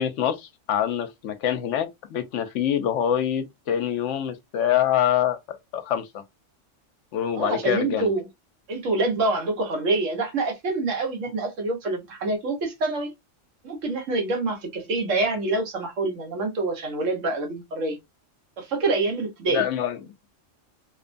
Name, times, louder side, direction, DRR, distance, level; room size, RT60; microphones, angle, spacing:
voice 1, 0.0-6.2 7.1-8.1 19.5-20.0, left 10 dB, 75° left, 0.9 m, -25 dB
voice 2, 7.3-8.3 8.7-13.1 13.6-18.0 18.6-19.6, right 2 dB, 75° right, 1.3 m, -26 dB
2.9 x 2.2 x 2.5 m
omnidirectional pair, 1.3 m